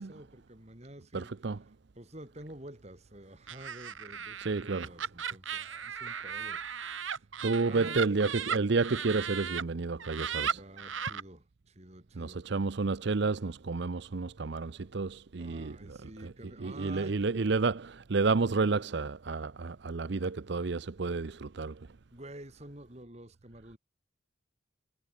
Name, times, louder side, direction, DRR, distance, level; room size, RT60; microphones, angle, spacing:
voice 1, 0.0-1.3 2.0-7.3 7.7-8.2 10.5-12.5 15.4-17.2 22.1-23.8, right 1 dB, 35° right, 3.3 m, -49 dB
voice 2, 1.1-1.6 4.4-4.9 7.4-10.6 12.2-21.8, right 4 dB, 60° right, 0.6 m, -31 dB
Laughter, 3.5-9.6 10.0-11.2, right 7 dB, 75° right, 2.2 m, -36 dB
head